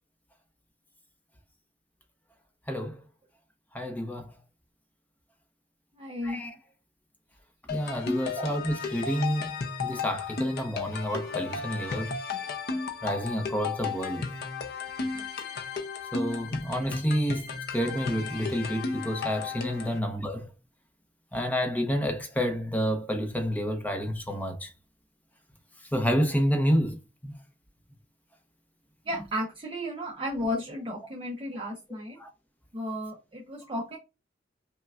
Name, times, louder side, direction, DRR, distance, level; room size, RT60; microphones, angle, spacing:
voice 1, 3.7-4.3 6.2-6.5 7.7-9.5 9.8-12.1 13.0-14.3 16.1-17.4 17.7-20.5 21.3-24.7 25.9-27.3 32.2-32.3, equal, 10° left, 0.7 m, -29 dB
voice 2, 6.0-6.4 8.3-8.5 15.2-15.3 19.8-19.9 29.0-32.2 32.7-34.0, equal, 30° right, 0.7 m, -34 dB
sound 1, 7.7-20.0, left 4 dB, 60° left, 0.6 m, -34 dB
5.6 x 2.2 x 2.4 m
head